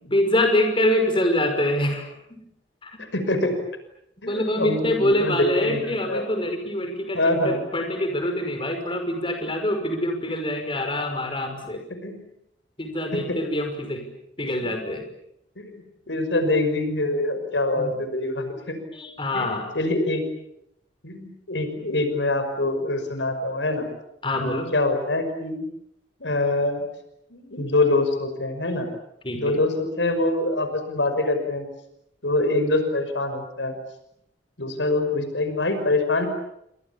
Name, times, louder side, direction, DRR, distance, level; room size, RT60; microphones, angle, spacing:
voice 1, 0.1-2.4 2.8-3.0 4.3-7.2 7.4-11.8 12.8-14.1 14.4-15.0 17.8-17.9 18.9-19.7 24.2-24.7 29.2-29.5, left 1 dB, 30° left, 5 dB, 5.7 m, -25 dB
voice 2, 3.1-3.5 4.2-6.2 7.1-7.7 12.0-12.3 13.1-13.4 14.4-14.7 15.6-18.8 19.3-20.2 21.0-23.9 24.3-25.7 26.2-26.8 27.3-28.9 29.3-31.7 32.2-33.7 34.6-36.3, left 2 dB, 85° left, 8 dB, 5.8 m, -25 dB
30.0 x 26.0 x 7.2 m, 0.79 s
head